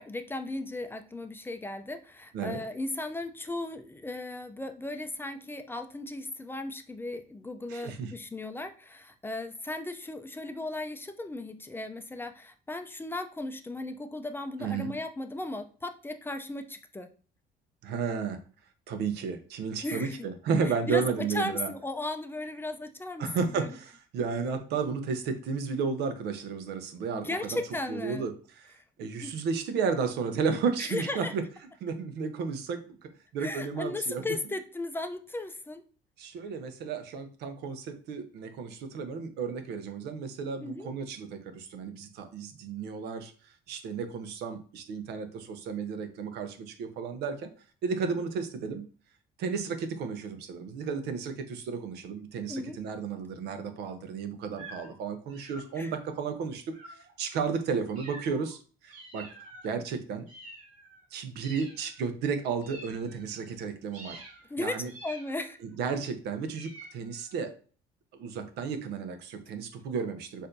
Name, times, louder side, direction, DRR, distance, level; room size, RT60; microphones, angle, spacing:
voice 1, 0.0-17.1 19.8-20.2 20.6-21.0 21.3-23.7 27.2-28.3 29.2-29.3 30.8-31.3 33.4-35.8 40.6-40.9 52.5-52.8 55.8-55.9 64.5-65.6, left 2 dB, 15° left, 7 dB, 0.4 m, -36 dB
voice 2, 7.7-8.1 14.6-14.9 17.8-18.4 18.9-21.7 23.2-27.6 27.9-28.7 29.0-31.4 31.8-34.3 36.2-43.3 43.7-47.5 47.8-48.8 49.4-59.3 59.6-60.3 61.1-64.2 64.6-64.9 65.6-67.5 68.2-70.5, right 5 dB, 80° right, 9 dB, 0.7 m, -33 dB
sound 1, 54.5-55.0 55.3-56.0 56.7-57.1 58.0-58.5 58.9-59.7 60.3-61.1 61.4-62.1 62.6-63.5 63.9-64.5 64.9-65.7 66.5-67.4, right 2 dB, 50° right, 2.3 m, -48 dB
6.4 x 2.6 x 2.6 m, 0.39 s
cardioid pair, 110°, 17 cm